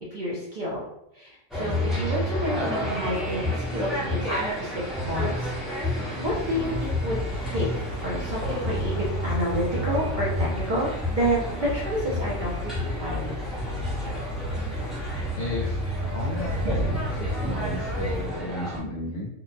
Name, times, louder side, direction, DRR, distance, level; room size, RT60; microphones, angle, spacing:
voice 1, 0.1-0.8 1.1-4.5 5.0-5.8 6.2-7.2 7.5-7.7 8.0-13.3 16.2-16.3 16.5-16.8, equal, 55° right, -5 dB, 0.5 m, -29 dB
sound 1, 1.5-18.8, left 1 dB, ahead, 0.4 m, -30 dB
sound 2, 6.2-18.3, left 1 dB, 90° right, 1.2 m, -35 dB
voice 2, 15.4-16.9 17.2-19.3, left 1 dB, 65° left, -4 dB, 0.5 m, -33 dB
2.7 x 2.1 x 2.5 m, 0.81 s
omnidirectional pair, 1.4 m